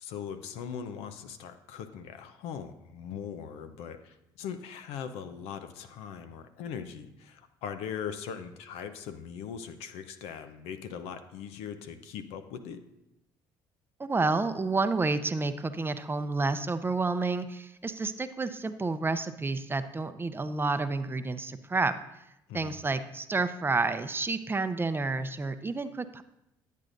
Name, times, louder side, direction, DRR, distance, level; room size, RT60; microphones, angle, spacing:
voice 1, 0.0-12.8 22.5-22.8, left 7 dB, 80° left, 9 dB, 0.6 m, -40 dB
voice 2, 14.0-21.9 22.5-26.2, right 3 dB, 20° right, 11 dB, 0.5 m, -30 dB
10.5 x 8.3 x 2.6 m, 0.84 s
supercardioid pair, 75°, 10 cm